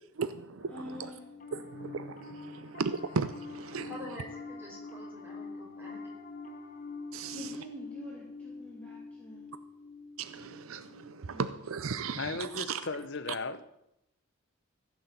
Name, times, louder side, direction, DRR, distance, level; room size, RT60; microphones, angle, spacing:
voice 1, 0.2-0.8 1.5-3.9 7.1-7.4 10.2-12.8, right 5 dB, 70° right, 0.6 m, -36 dB
Piano, 0.6-12.1, left 3 dB, 40° left, 1.3 m, -45 dB
voice 2, 0.7-1.3 7.3-9.5 11.3-11.6, equal, 5° left, 2.6 m, -46 dB
voice 3, 3.9-6.0, left 1 dB, 10° right, 4.2 m, -46 dB
voice 4, 12.2-13.6, left 3 dB, 55° left, 0.9 m, -36 dB
15.0 x 6.3 x 8.2 m
head